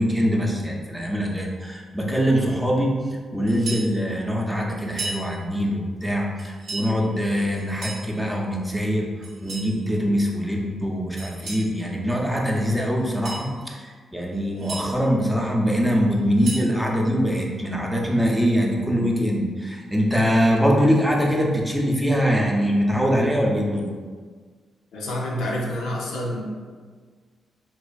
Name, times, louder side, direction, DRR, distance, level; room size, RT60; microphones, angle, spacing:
voice 1, 0.0-23.9, equal, 5° right, -1 dB, 0.5 m, -23 dB
sound 1, 3.5-3.9 4.8-5.2 6.4-6.9 7.6-8.1 9.2-9.7 11.2-11.7 13.0-13.5 14.3-14.8 16.1-16.7, right 3 dB, 85° right, 0.9 m, -34 dB
voice 2, 24.9-26.4, left 1 dB, 85° left, -2 dB, 0.4 m, -28 dB
2.4 x 2.4 x 2.3 m, 1.5 s
supercardioid pair, 60°, 0 cm